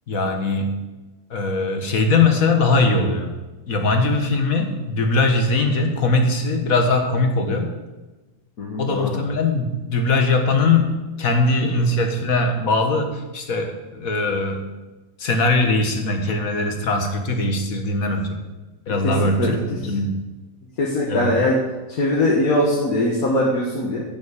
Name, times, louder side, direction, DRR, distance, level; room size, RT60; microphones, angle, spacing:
voice 1, 0.1-0.7 1.3-3.3 3.7-7.7 8.8-14.7 15.2-18.4 18.9-20.2 21.1-21.3, left 3 dB, 70° left, 4 dB, 1.9 m, -21 dB
voice 2, 8.6-9.2 11.6-11.7 18.9-19.0 19.2-19.5 20.8-21.6 21.9-24.0, left 1 dB, 90° left, -3 dB, 2.0 m, -21 dB
11.0 x 6.3 x 8.4 m, 1.2 s
omnidirectional pair, 1.5 m